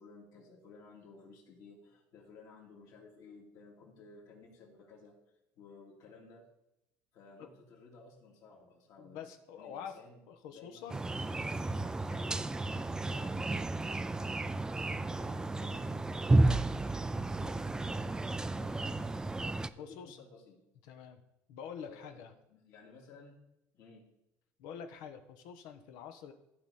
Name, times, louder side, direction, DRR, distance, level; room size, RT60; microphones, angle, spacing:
voice 1, 0.0-5.2 5.6-6.5 7.1-9.3 9.5-10.2 10.5-19.3 19.7-20.6 21.8-23.4 23.7-24.1, left 4 dB, 60° left, -1 dB, 2.8 m, -55 dB
voice 2, 9.0-9.9 10.3-11.0 19.8-20.2 20.8-21.2 21.5-22.3 24.6-26.3, left 7 dB, 85° left, 7 dB, 1.1 m, -46 dB
sound 1, 10.9-19.7, right 2 dB, 10° right, 0.3 m, -32 dB
14.5 x 5.0 x 4.3 m, 0.86 s
cardioid pair, 130°, 7 cm